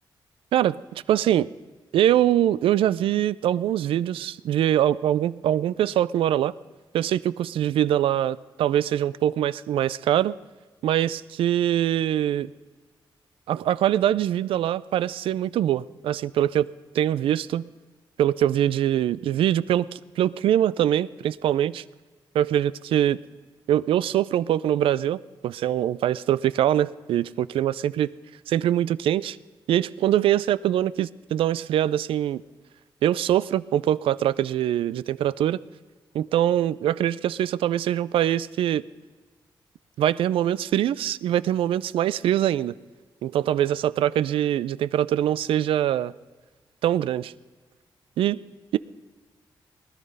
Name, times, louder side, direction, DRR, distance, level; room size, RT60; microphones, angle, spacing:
voice 1, 1.1-1.5 1.9-6.5 6.9-10.4 10.8-12.5 13.5-16.7 16.9-17.6 18.2-21.8 22.3-23.2 23.7-28.1 28.5-29.4 29.7-32.4 33.0-35.6 36.1-38.8 40.0-42.7 43.2-46.1 46.8-47.3 48.2-48.4, right 11 dB, 90° right, 18 dB, 0.4 m, -23 dB
19.5 x 11.5 x 5.4 m, 1.3 s
cardioid pair, 70°, 9 cm